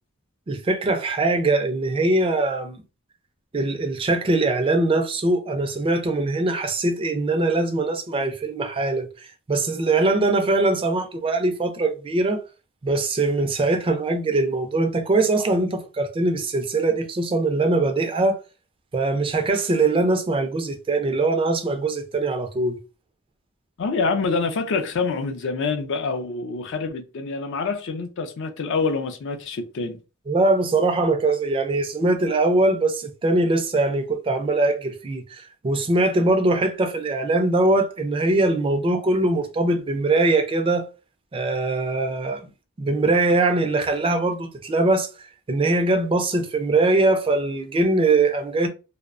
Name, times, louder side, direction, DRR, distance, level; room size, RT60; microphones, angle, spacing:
voice 1, 0.5-2.8 3.5-9.1 9.5-12.4 12.8-18.4 18.9-22.8 30.3-40.9 41.3-42.4 42.8-45.1 45.5-48.7, right 2 dB, 25° right, 0.3 m, -22 dB
voice 2, 23.8-30.0, left 4 dB, 60° left, 0.4 m, -26 dB
2.6 x 2.0 x 2.4 m
head